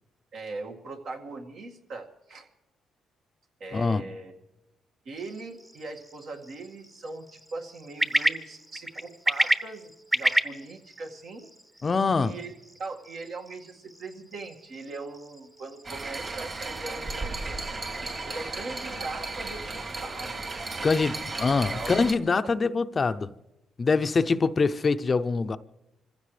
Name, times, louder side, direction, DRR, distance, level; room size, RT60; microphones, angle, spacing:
voice 1, 0.3-2.5 3.6-4.3 5.1-11.5 12.2-12.5 12.8-17.6 18.2-20.5 21.7-21.9, right 3 dB, 70° right, 2.0 m, -40 dB
voice 2, 3.7-4.0 11.8-12.3 20.8-23.3 23.8-25.6, left 4 dB, 35° left, 0.5 m, -24 dB
sound 1, 5.2-16.8, right 1 dB, 10° right, 0.8 m, -32 dB
sound 2, 15.8-22.1, right 3 dB, 40° right, 2.9 m, -35 dB
26.5 x 15.5 x 3.3 m
cardioid pair, 90°, 0 cm